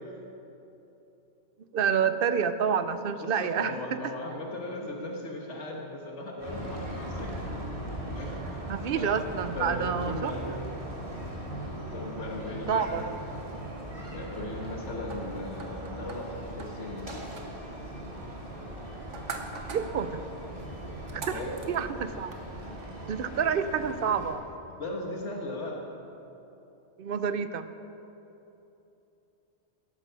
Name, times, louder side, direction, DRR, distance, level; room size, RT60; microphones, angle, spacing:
voice 1, 1.7-4.1 8.7-10.3 12.7-13.1 19.7-20.2 21.3-21.4 21.7-22.3 23.1-24.4 27.0-27.7, right 7 dB, 55° right, 11 dB, 0.7 m, -28 dB
voice 2, 3.2-7.5 8.1-8.6 8.9-9.2 9.5-10.6 11.9-13.1 14.1-17.2 21.3-21.5 24.8-25.8, left 2 dB, 75° left, 0 dB, 1.7 m, -37 dB
sound 1, 6.4-24.3, right 1 dB, 30° right, 2.4 m, -39 dB
sound 2, 15.1-22.4, right 4 dB, 90° right, 1.4 m, -45 dB
13.5 x 12.0 x 5.7 m, 3.0 s
omnidirectional pair, 1.2 m